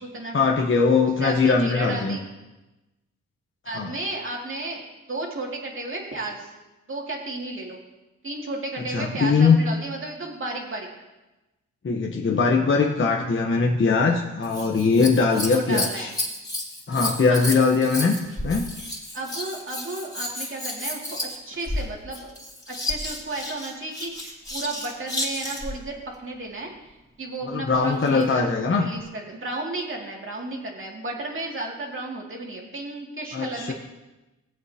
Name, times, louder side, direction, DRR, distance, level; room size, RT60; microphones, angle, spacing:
voice 1, 0.3-2.2 3.7-3.9 8.9-9.6 11.8-16.1 16.9-18.2 18.4-18.7 27.4-28.9 33.3-33.7, left 4 dB, 40° left, 0 dB, 1.1 m, -21 dB
voice 2, 1.2-2.2 3.6-6.5 6.9-7.8 8.2-10.9 15.3-16.1 17.3-17.5 19.1-22.3 22.7-28.5 28.8-33.7, right 2 dB, 40° right, -1 dB, 2.5 m, -33 dB
Scissors, 14.4-25.8 27.7-28.4 29.1-29.2, left 1 dB, 15° left, 3.5 m, -32 dB
17.5 x 8.1 x 2.9 m, 1.0 s
cardioid pair, 85°, 32 cm